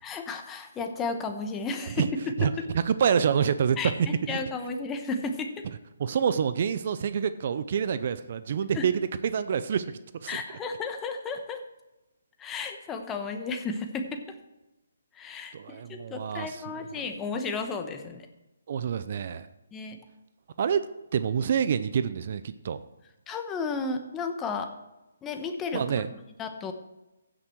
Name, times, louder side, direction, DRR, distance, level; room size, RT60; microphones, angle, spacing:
voice 1, 0.0-2.5 3.8-5.5 8.7-8.8 10.3-11.6 12.4-14.2 15.2-18.3 19.7-20.0 23.3-24.7 25.2-25.8 26.4-26.7, left 4 dB, 15° left, 5 dB, 1.1 m, -33 dB
voice 2, 2.4-3.9 4.3-4.4 6.0-9.8 10.1-10.4 15.5-16.9 18.7-19.5 20.6-20.8 21.1-22.8 25.7-26.1, right 7 dB, 50° right, 13 dB, 0.5 m, -27 dB
15.5 x 6.1 x 4.6 m, 0.98 s
hypercardioid pair, 150°, 0 cm